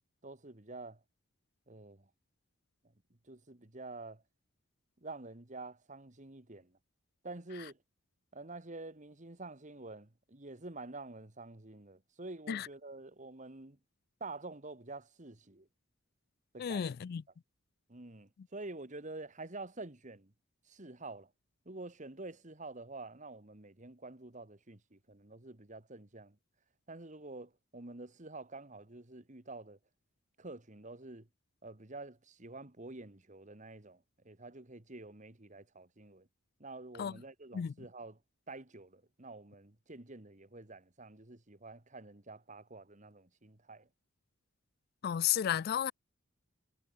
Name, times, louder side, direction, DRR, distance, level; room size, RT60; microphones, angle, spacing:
voice 1, 0.2-1.0 1.7-2.1 3.3-4.2 5.0-6.7 7.2-7.8 8.3-13.8 14.2-15.7 16.5-16.9 17.9-20.3 20.7-21.3 21.6-26.4 26.9-29.8 30.4-31.3 31.6-36.3 36.6-38.2 38.5-43.9, right 2 dB, 35° right, 1.8 m, -48 dB
voice 2, 16.6-17.2 37.0-37.2 37.5-37.7 45.0-45.9, left 9 dB, 50° left, 0.3 m, -33 dB
head